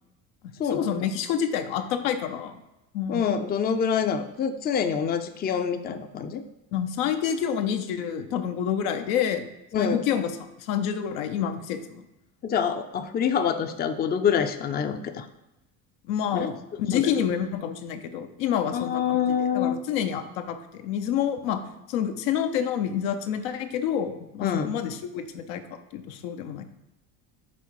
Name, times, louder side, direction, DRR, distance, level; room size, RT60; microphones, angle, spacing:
voice 1, 0.7-2.5 2.9-3.3 6.7-9.5 9.8-10.3 10.6-12.0 16.1-21.6 21.9-25.6 25.9-26.7, left 8 dB, 80° left, 7 dB, 0.7 m, -28 dB
voice 2, 3.1-6.4 9.7-10.0 12.4-15.3 16.3-16.5 16.9-17.1 18.7-19.8 24.4-24.8, left 7 dB, 25° left, 8 dB, 0.5 m, -26 dB
6.1 x 3.4 x 4.7 m, 0.94 s
supercardioid pair, 95°, 40 cm